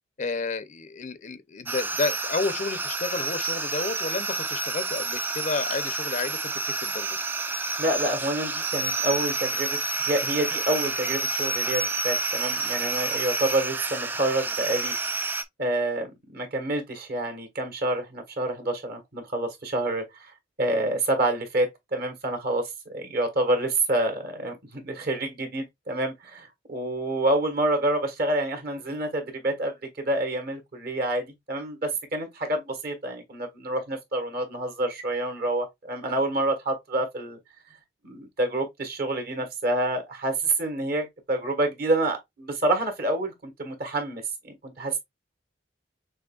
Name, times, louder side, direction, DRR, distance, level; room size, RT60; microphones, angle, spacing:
voice 1, 0.2-6.4 6.8-7.2, left 3 dB, 40° left, 0.5 m, -31 dB
sound 1, 1.7-15.4, right 3 dB, 10° right, 0.3 m, -29 dB
voice 2, 7.8-14.9 15.6-20.3 20.6-37.4 38.0-45.0, right 1 dB, 55° right, 1.4 m, -28 dB
6.1 x 3.0 x 2.3 m
head